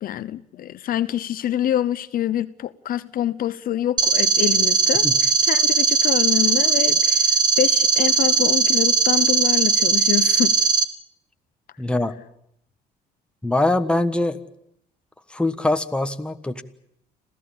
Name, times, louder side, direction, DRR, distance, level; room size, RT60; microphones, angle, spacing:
voice 1, 0.0-10.7, left 11 dB, 60° left, 0.8 m, -26 dB
sound 1, 4.0-10.8, right 5 dB, 25° right, 1.8 m, -19 dB
voice 2, 11.8-12.1 13.4-14.4 15.3-16.6, left 2 dB, 5° left, 1.4 m, -22 dB
27.5 x 15.5 x 8.7 m
cardioid pair, 110°, 17 cm